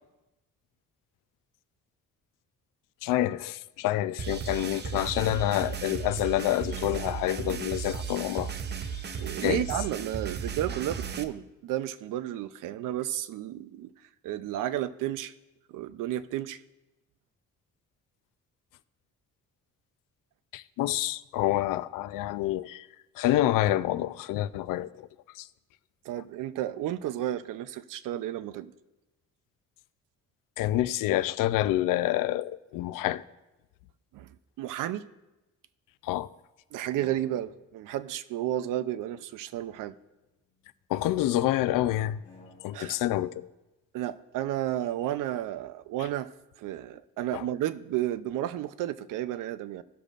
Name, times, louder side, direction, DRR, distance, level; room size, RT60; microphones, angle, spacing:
voice 1, 3.0-8.5 9.2-9.6 20.5-22.9 23.2-25.1 25.4-25.5 30.6-33.2 36.0-36.3 40.9-42.2 42.6-43.5 47.3-47.4, left 14 dB, 90° left, 0.5 m, -27 dB
sound 1, 4.2-11.2, right 7 dB, 35° right, 0.6 m, -35 dB
voice 2, 9.2-13.9 14.2-15.3 15.7-16.6 26.0-28.7 34.1-34.3 34.6-35.0 36.7-39.9 42.7-43.0 43.9-46.3 46.6-49.8, right 12 dB, 85° right, 0.5 m, -32 dB
sound 2, 36.7-37.7 39.0-40.7 42.0-43.0, left 3 dB, 20° left, 2.8 m, -57 dB
17.5 x 6.6 x 2.5 m
cardioid pair, 115°, 32 cm